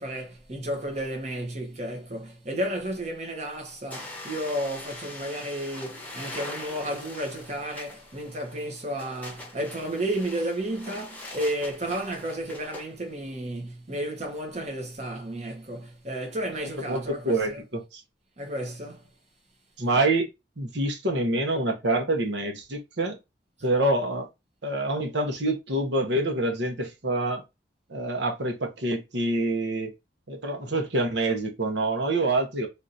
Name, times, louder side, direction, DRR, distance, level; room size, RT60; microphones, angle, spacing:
voice 1, 0.0-17.6 18.4-19.1, right 1 dB, 40° right, 1.1 m, -32 dB
sound 1, 3.9-12.9, left 2 dB, 10° left, 0.9 m, -42 dB
voice 2, 16.9-18.0 19.8-20.3 20.6-23.2 23.6-24.3 24.6-27.4 27.9-29.9 30.3-32.7, right 2 dB, 70° right, 1.0 m, -26 dB
3.7 x 2.6 x 2.5 m
head